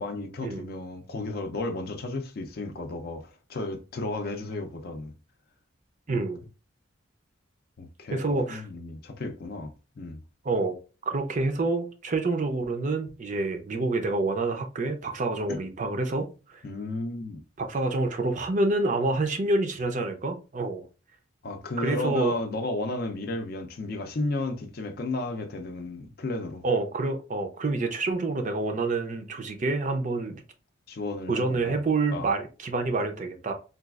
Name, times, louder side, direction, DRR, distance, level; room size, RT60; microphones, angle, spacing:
voice 1, 0.0-5.1 6.1-6.3 7.8-8.2 8.5-10.2 15.5-15.6 16.6-17.4 21.4-26.6 30.9-31.8 32.1-32.3, left 2 dB, 50° left, 0.4 m, -33 dB
voice 2, 6.1-6.4 8.1-8.6 10.4-10.7 11.1-16.6 17.6-20.8 21.8-22.4 26.6-30.4 31.3-33.5, right 3 dB, 40° right, 0.4 m, -27 dB
3.9 x 2.3 x 2.3 m
head